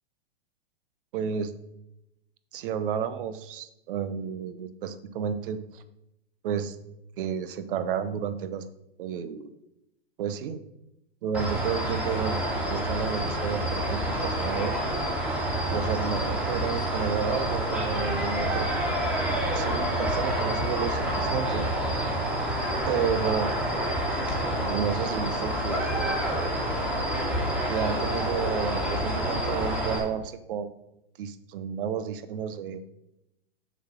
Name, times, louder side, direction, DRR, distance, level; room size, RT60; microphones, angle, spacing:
voice 1, 1.1-1.5 2.5-5.8 6.4-6.8 7.2-8.6 9.0-9.6 10.2-10.6 11.2-12.4 12.7-14.8 15.7-18.7 19.5-21.7 22.9-23.5 24.6-26.2 27.6-30.8 31.2-32.8, right 7 dB, 55° right, 12 dB, 0.9 m, -31 dB
sound 1, 11.3-30.0, right 1 dB, 5° right, 1.9 m, -28 dB
7.1 x 6.2 x 4.4 m, 0.85 s
hypercardioid pair, 120°, 32 cm